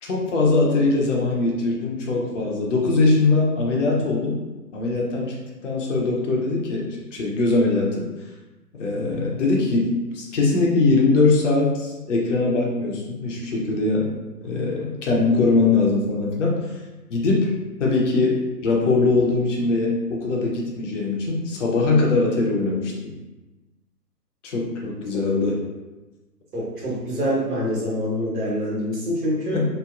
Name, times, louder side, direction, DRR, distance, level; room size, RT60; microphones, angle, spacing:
voice 1, 0.0-4.4 4.7-5.4 5.6-8.1 8.8-14.1 14.4-16.6 17.1-17.5 17.8-23.1 24.4-25.6 29.5-29.6, left 3 dB, 50° left, -2 dB, 0.6 m, -21 dB
voice 2, 26.5-29.6, equal, 65° right, -5 dB, 1.3 m, -25 dB
2.9 x 2.0 x 2.4 m, 1.1 s
figure-of-eight pair, 145°, 50 cm